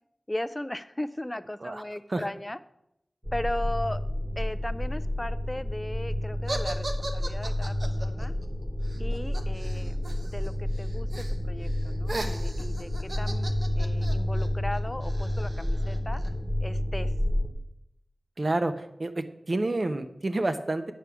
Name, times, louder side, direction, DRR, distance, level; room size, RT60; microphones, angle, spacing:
voice 1, 0.3-2.6 3.3-4.0 4.4-8.3 9.0-16.2 16.6-17.1, left 1 dB, 20° left, 12 dB, 0.3 m, -37 dB
sound 1, 3.2-17.5, left 1 dB, 15° right, 1.3 m, -30 dB
sound 2, 6.5-10.5 10.7-11.4 11.7-16.3, right 2 dB, 75° right, 1.1 m, -38 dB
voice 2, 18.4-18.7 19.0-20.9, right 2 dB, 50° right, 8 dB, 0.8 m, -28 dB
9.4 x 4.9 x 6.9 m, 0.82 s
wide cardioid pair, 75°, 0 cm